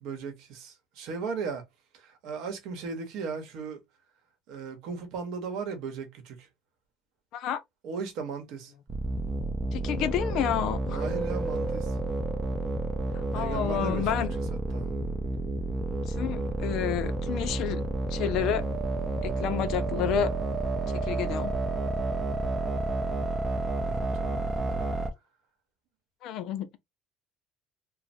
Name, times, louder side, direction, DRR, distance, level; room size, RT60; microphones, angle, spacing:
voice 1, 0.0-1.7 1.9-3.8 4.5-6.5 7.8-8.7 10.9-12.0 13.3-14.9 23.8-24.9, right 5 dB, 70° right, 0.9 m, -37 dB
sound 1, 8.9-25.1, right 2 dB, 20° right, 0.5 m, -30 dB
voice 2, 9.7-11.0 13.3-14.3 16.1-17.8 18.1-18.6 19.2-20.3 21.0-21.5 26.2-26.7, left 10 dB, 60° left, 0.4 m, -30 dB
3.1 x 2.0 x 2.6 m
cardioid pair, 165°, 0 cm